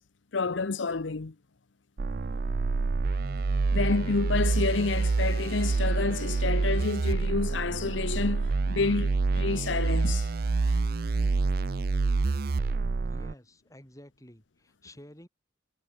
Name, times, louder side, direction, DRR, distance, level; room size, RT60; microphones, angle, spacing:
voice 1, 0.3-1.3 3.7-10.3 10.6-10.8, left 4 dB, 75° left, 0.8 m, -29 dB
sound 1, 2.0-13.3, right 3 dB, 50° right, 0.5 m, -27 dB
voice 2, 13.1-15.3, left 1 dB, 15° left, 5.2 m, -51 dB
head